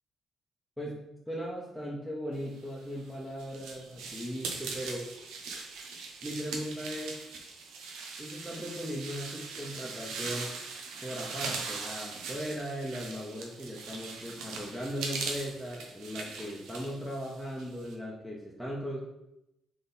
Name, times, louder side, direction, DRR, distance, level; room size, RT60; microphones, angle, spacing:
voice 1, 1.3-5.1 6.2-7.2 8.2-10.5 11.0-19.0, equal, ahead, -4 dB, 0.9 m, -38 dB
sound 1, 2.8-17.9, right 4 dB, 90° right, 0.7 m, -40 dB
3.8 x 3.3 x 4.1 m, 0.85 s
cardioid pair, 90°, 0 cm